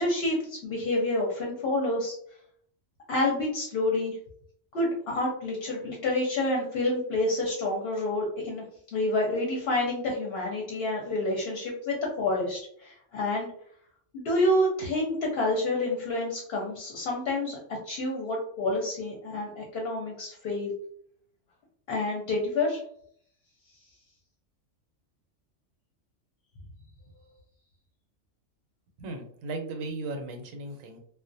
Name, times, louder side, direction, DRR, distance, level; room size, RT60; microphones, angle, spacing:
voice 1, 0.0-2.2 3.1-4.2 4.7-8.6 8.9-13.5 14.1-17.6 17.9-20.7 21.9-22.8, left 2 dB, 60° left, -1 dB, 0.7 m, -28 dB
voice 2, 29.0-31.0, right 2 dB, 85° right, 5 dB, 1.0 m, -36 dB
2.4 x 2.0 x 2.5 m, 0.64 s
omnidirectional pair, 1.3 m